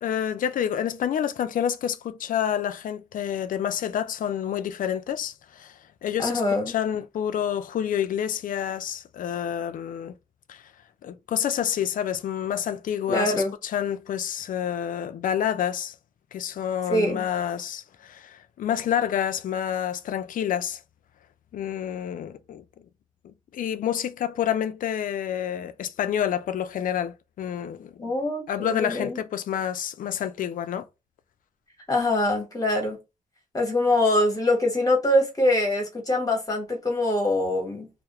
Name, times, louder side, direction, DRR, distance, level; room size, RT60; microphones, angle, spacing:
voice 1, 0.0-10.1 10.5-10.6 11.0-15.9 16.3-20.8 21.5-22.6 23.2-28.1 28.5-30.9, left 9 dB, 70° left, 0.4 m, -28 dB
voice 2, 6.2-6.7 13.1-13.5 16.9-17.3 28.0-29.2 31.9-33.0 33.5-37.9, left 1 dB, 25° left, 1.2 m, -24 dB
2.3 x 2.1 x 2.9 m
cardioid pair, 95°, 14 cm